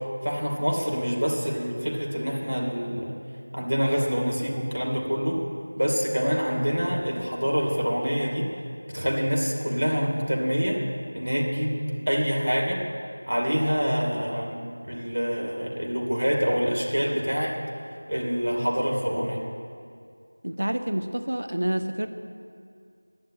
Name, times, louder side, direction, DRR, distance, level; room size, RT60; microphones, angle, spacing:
voice 1, 0.0-3.2 3.5-5.4 5.8-8.5 8.9-10.8 11.1-11.8 12.1-12.8 13.3-14.6 14.8-17.6 18.1-19.4, equal, 75° right, -1 dB, 2.9 m, -26 dB
voice 2, 20.4-22.1, right 1 dB, 50° right, 8 dB, 0.8 m, -28 dB
11.5 x 10.5 x 8.8 m, 2.3 s
figure-of-eight pair, 175°, 0 cm